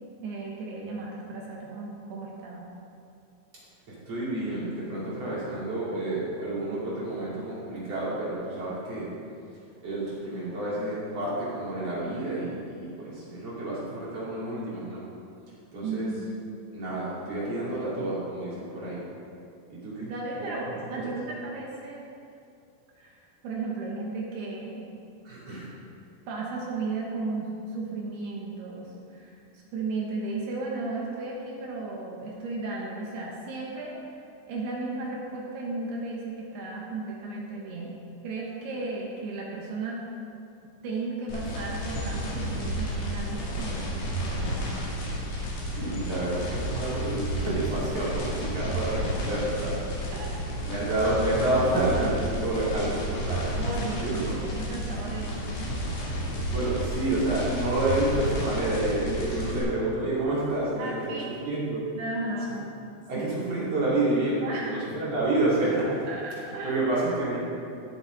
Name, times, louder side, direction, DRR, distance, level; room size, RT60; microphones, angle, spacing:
voice 1, 0.2-2.7 15.8-16.4 20.0-22.0 23.0-24.9 26.3-29.4 29.7-34.0 34.5-38.0 38.2-40.0 40.8-44.7 50.1-50.3 53.6-55.7 60.8-61.3 61.9-62.6 63.2-63.4 64.4-64.8 66.1-66.8, right 3 dB, 70° right, -3 dB, 2.8 m, -35 dB
voice 2, 3.9-9.1 9.8-15.0 15.7-16.1 16.7-19.0 19.7-20.1 20.4-20.6 20.9-21.0 25.2-25.7 45.5-49.8 50.6-53.5 54.0-54.3 56.5-61.0 61.4-61.9 63.1-66.0 66.6-67.4, right 2 dB, 35° right, -9 dB, 3.7 m, -29 dB
sound 1, 41.3-59.6, equal, 70° left, 5.0 m, -31 dB
18.0 x 7.1 x 4.0 m, 2.5 s
omnidirectional pair, 5.6 m